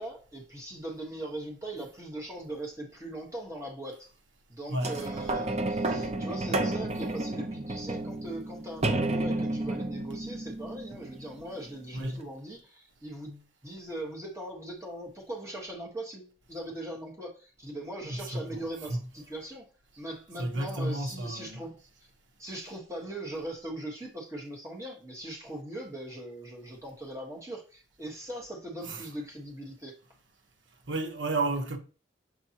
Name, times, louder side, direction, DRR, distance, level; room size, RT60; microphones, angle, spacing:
voice 1, 0.0-4.0 4.5-19.7 20.0-21.8 22.4-30.0, right 1 dB, 15° right, 1.4 m, -40 dB
sound 1, 4.8-11.6 12.2-12.3, right 2 dB, 35° right, 0.7 m, -31 dB
voice 2, 11.9-12.2 18.0-19.1 20.4-21.6 28.8-29.1 30.9-31.8, right 2 dB, 90° right, 1.1 m, -32 dB
7.3 x 4.4 x 2.9 m
head